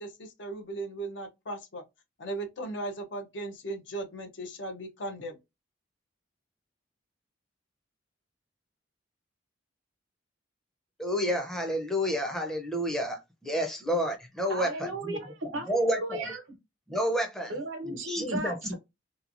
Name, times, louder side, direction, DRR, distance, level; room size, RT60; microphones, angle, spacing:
voice 1, 0.0-1.8 2.2-5.4, right 2 dB, 65° left, 0.6 m, -37 dB
voice 2, 11.0-15.2 15.7-16.3 16.9-17.5 17.8-18.7, equal, ahead, 0.5 m, -30 dB
voice 3, 14.5-16.4 17.5-18.7, right 1 dB, 85° right, 0.9 m, -35 dB
2.9 x 2.2 x 2.5 m
head